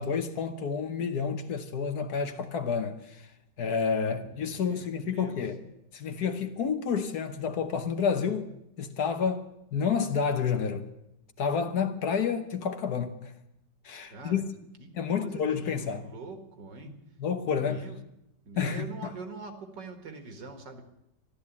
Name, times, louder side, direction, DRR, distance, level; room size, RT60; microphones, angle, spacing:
voice 1, 0.0-3.3 3.6-5.6 5.9-10.9 11.4-13.3 13.8-14.5 14.9-16.0 16.8-17.9 18.6-19.1, left 6 dB, 60° left, 1.5 m, -30 dB
voice 2, 4.1-5.4 14.1-14.4 14.8-14.9 15.2-16.9 17.6-18.0 18.4-20.8, right 3 dB, 70° right, 2.4 m, -44 dB
13.0 x 12.5 x 8.3 m
omnidirectional pair, 1.9 m